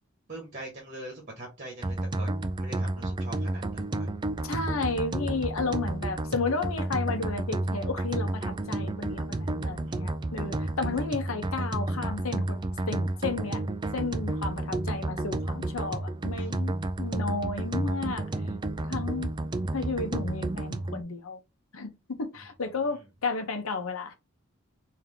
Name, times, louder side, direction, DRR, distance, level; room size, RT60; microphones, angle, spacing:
voice 1, 0.3-2.3 2.6-4.1 9.9-10.1 16.4-16.5 22.8-23.0, right 1 dB, 40° right, 1.5 m, -43 dB
sound 1, 1.8-21.0, right 2 dB, 20° right, 0.4 m, -31 dB
voice 2, 4.4-12.6 12.9-13.6 13.9-18.3 18.9-19.3 19.7-21.4 21.7-24.1, left 3 dB, 80° left, 0.8 m, -33 dB
3.7 x 2.8 x 3.5 m
head